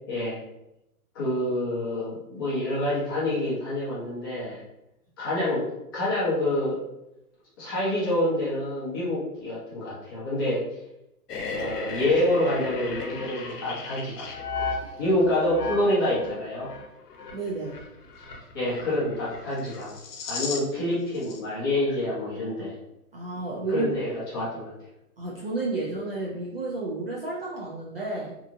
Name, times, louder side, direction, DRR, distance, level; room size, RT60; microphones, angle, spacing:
voice 1, 0.1-0.4 1.1-4.6 5.2-5.6 5.9-6.8 7.6-10.6 11.5-14.3 15.0-16.7 18.5-19.9 20.3-22.7 23.7-24.7, left 1 dB, 15° left, -8 dB, 0.6 m, -27 dB
sound 1, 11.3-20.9 21.1-21.4, left 4 dB, 85° left, 0.7 m, -35 dB
voice 2, 17.3-17.8 23.1-23.9 25.2-28.4, right 3 dB, 40° right, -4 dB, 0.4 m, -31 dB
2.9 x 2.4 x 2.4 m, 0.87 s
hypercardioid pair, 155°, 45 cm